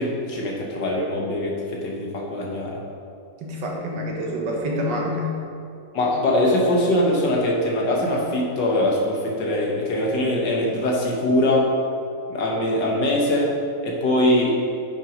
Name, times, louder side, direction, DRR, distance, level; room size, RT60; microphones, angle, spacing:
voice 1, 0.0-2.8 5.9-11.7 12.3-13.6 13.8-14.5, left 1 dB, 70° left, -1 dB, 2.0 m, -22 dB
voice 2, 3.4-5.4, equal, 70° right, -1 dB, 1.9 m, -27 dB
9.4 x 5.9 x 5.1 m, 2.5 s
omnidirectional pair, 2.0 m